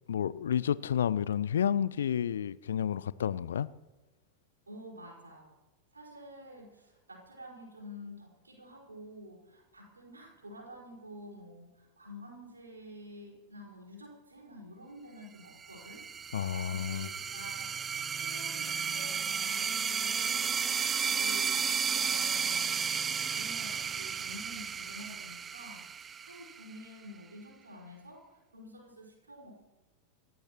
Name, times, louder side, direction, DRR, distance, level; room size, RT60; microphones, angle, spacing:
voice 1, 0.1-3.7 16.3-17.1, left 9 dB, 65° left, 0.5 m, -30 dB
voice 2, 4.7-5.5 5.9-16.1 16.7-17.7 18.2-22.8 23.1-25.9 26.2-29.7, equal, 75° right, 5.2 m, -49 dB
sound 1, 15.6-26.9, right 7 dB, 20° right, 0.5 m, -33 dB
27.5 x 14.5 x 3.1 m
figure-of-eight pair, 90°, 0 cm